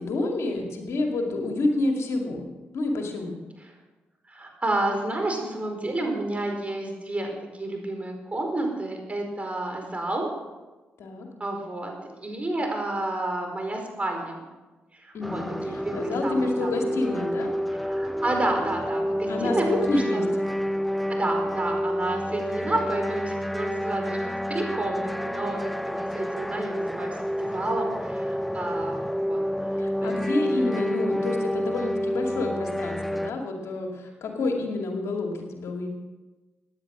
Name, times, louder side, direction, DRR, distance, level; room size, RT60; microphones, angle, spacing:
voice 1, 0.0-2.5 2.7-3.4 11.0-11.3 15.1-17.5 19.3-20.5 29.8-35.9, left 2 dB, 70° left, 2 dB, 2.3 m, -28 dB
voice 2, 4.3-10.3 11.4-11.9 12.2-14.4 15.0-16.9 17.8-20.2 21.1-24.2 24.5-29.4 30.0-31.0, right 2 dB, 25° right, 2 dB, 4.8 m, -30 dB
sound 1, 15.2-33.3, equal, ahead, 0.6 m, -29 dB
15.5 x 10.0 x 6.1 m, 1.2 s
hypercardioid pair, 45°, 5 cm